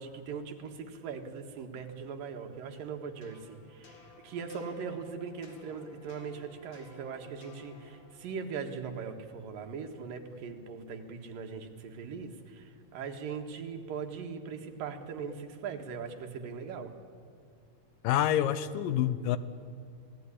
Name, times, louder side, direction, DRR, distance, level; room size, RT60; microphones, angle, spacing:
voice 1, 0.0-4.0 4.2-16.9, right 6 dB, 80° right, 5 dB, 3.4 m, -40 dB
sound 1, 2.8-8.7, left 4 dB, 55° left, 3.4 m, -56 dB
voice 2, 18.0-19.4, left 11 dB, 85° left, 14 dB, 2.7 m, -27 dB
27.0 x 18.0 x 10.0 m, 2.3 s
omnidirectional pair, 3.9 m